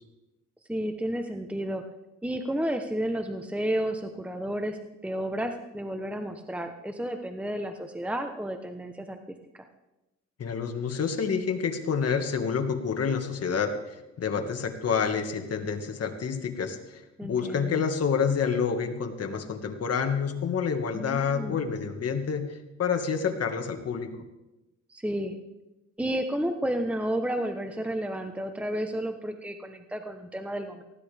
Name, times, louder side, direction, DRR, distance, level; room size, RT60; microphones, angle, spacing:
voice 1, 0.7-1.8 2.2-4.8 5.0-9.2 17.2-17.8 20.9-21.6 24.9-25.4 26.0-30.8, right 1 dB, 5° right, 6 dB, 1.0 m, -31 dB
voice 2, 10.4-24.1, left 6 dB, 55° left, 6 dB, 1.9 m, -28 dB
19.0 x 15.5 x 3.5 m, 0.99 s
cardioid pair, 90°, 30 cm